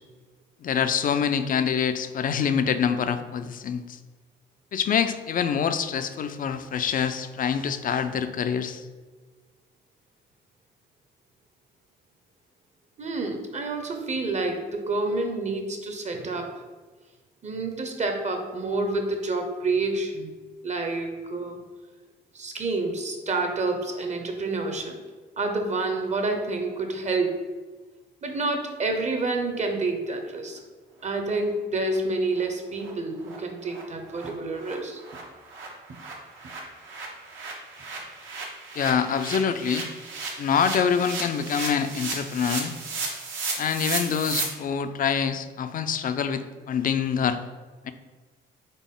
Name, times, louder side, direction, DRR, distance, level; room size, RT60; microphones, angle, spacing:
voice 1, 0.6-3.8 4.7-8.8 38.8-39.9 40.4-42.7 43.6-47.4 47.8-47.9, left 7 dB, 45° left, 10 dB, 0.4 m, -25 dB
voice 2, 13.0-16.5 17.4-20.3 20.6-21.6 22.3-25.0 25.4-27.4 28.2-30.6 31.0-35.0, right 3 dB, 35° right, 4 dB, 0.7 m, -28 dB
sound 1, 31.5-31.6 31.9-32.0 32.3-32.4 32.8-32.9 33.2-33.4 33.7-33.8 34.1-34.3 34.5-44.4, right 4 dB, 75° right, 1.0 m, -35 dB
4.0 x 3.4 x 3.7 m, 1.4 s
cardioid pair, 90°, 20 cm